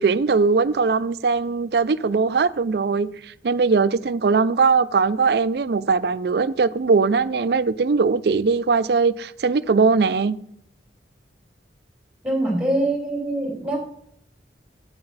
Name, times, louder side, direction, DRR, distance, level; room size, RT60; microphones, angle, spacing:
voice 1, 0.0-3.1 3.4-10.4, right 4 dB, 60° right, 0.4 m, -20 dB
voice 2, 12.2-13.8, right 1 dB, 5° right, 2.9 m, -23 dB
8.8 x 8.7 x 4.0 m
head